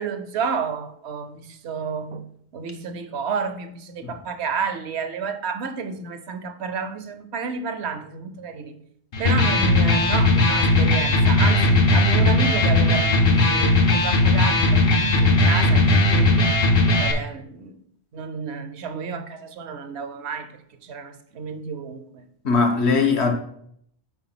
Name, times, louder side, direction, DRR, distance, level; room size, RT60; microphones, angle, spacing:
voice 1, 0.0-2.2 2.5-8.8 9.2-16.5 17.0-17.8 18.1-20.5 20.8-22.2, right 5 dB, 75° right, 0.9 m, -31 dB
Electric guitar, 9.1-17.1, left 2 dB, 60° left, 1.0 m, -18 dB
voice 2, 22.4-23.3, left 4 dB, 75° left, 1.2 m, -20 dB
4.6 x 4.2 x 5.7 m
omnidirectional pair, 1.1 m